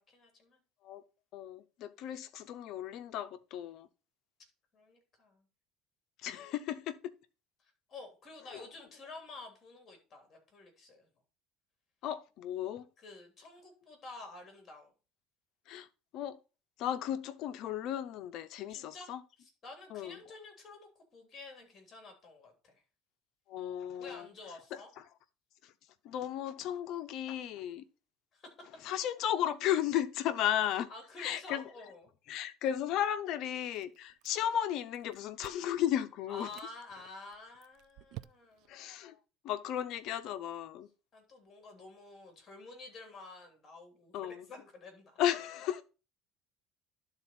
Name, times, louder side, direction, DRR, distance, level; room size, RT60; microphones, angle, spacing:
voice 1, 0.1-0.6 4.7-5.4 7.6-11.1 13.0-14.9 18.7-22.8 24.0-24.9 28.3-28.8 30.9-32.1 36.3-38.7 41.1-45.2, left 3 dB, 25° left, 3.0 m, -50 dB
voice 2, 1.3-3.9 6.2-7.1 8.5-8.6 12.0-12.8 15.7-15.9 16.1-16.4 16.8-19.2 19.9-20.2 23.5-24.3 24.7-24.8 25.6-25.7 26.0-27.8 28.8-30.9 31.2-31.6 32.3-36.5 38.7-39.2 39.4-40.9 44.1-44.4 45.2-45.8, left 11 dB, 55° left, 0.7 m, -34 dB
Chewing mastication, 33.7-34.7 34.9-35.8 36.3-36.7 37.3-38.7, right 17 dB, 60° right, 0.4 m, -51 dB
11.5 x 4.0 x 4.3 m
cardioid pair, 140°, 0 cm